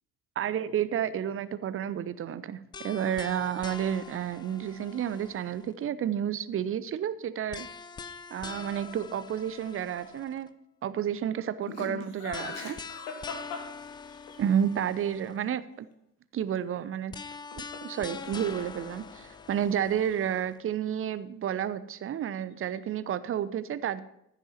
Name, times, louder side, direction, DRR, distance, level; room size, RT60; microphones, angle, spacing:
voice 1, 0.4-7.7 8.3-10.5 10.8-12.8 14.4-15.9 16.3-17.1 17.8-24.0, right 9 dB, 25° right, 15 dB, 0.7 m, -31 dB
sound 1, 2.7-5.9 7.5-10.5 12.3-15.5 17.1-20.6, left 5 dB, 10° left, 0.3 m, -44 dB
Laughter, 11.7-14.4 17.2-18.0 18.2-18.8, left 4 dB, 65° left, 1.9 m, -40 dB
15.0 x 6.4 x 5.7 m, 0.77 s
figure-of-eight pair, 55°, 48 cm